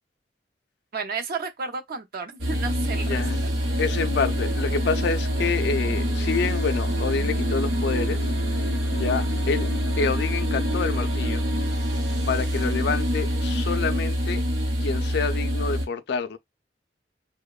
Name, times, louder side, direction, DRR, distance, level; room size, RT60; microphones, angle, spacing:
voice 1, 0.9-3.5, right 4 dB, 55° right, 0.5 m, -32 dB
sound 1, 2.4-15.9, equal, 80° right, 0.8 m, -25 dB
voice 2, 3.8-8.2 8.9-9.7 10.0-11.4 12.3-14.4 14.8-16.4, left 5 dB, 65° left, 0.4 m, -27 dB
2.8 x 2.1 x 2.3 m
head